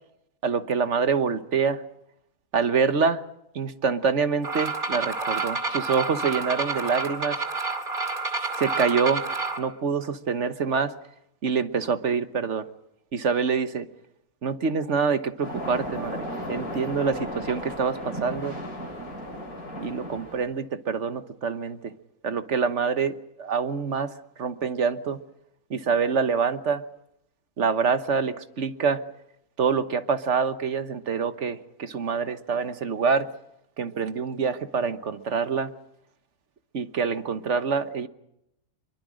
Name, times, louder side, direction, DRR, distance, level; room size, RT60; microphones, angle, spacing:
voice 1, 0.4-1.8 2.5-3.2 3.5-7.4 8.6-9.2 9.6-10.9 11.4-12.7 13.1-13.9 14.4-18.6 19.8-21.9 22.2-24.1 24.4-25.2 25.7-26.8 27.6-29.0 29.6-33.3 33.8-35.7 36.7-38.1, right 5 dB, 50° right, 10 dB, 1.4 m, -26 dB
sound 1, 4.4-9.6, right 3 dB, 35° right, 2.5 m, -29 dB
sound 2, 15.4-20.4, equal, 75° left, 8.2 m, -35 dB
25.0 x 23.0 x 6.3 m, 0.80 s
omnidirectional pair, 1.6 m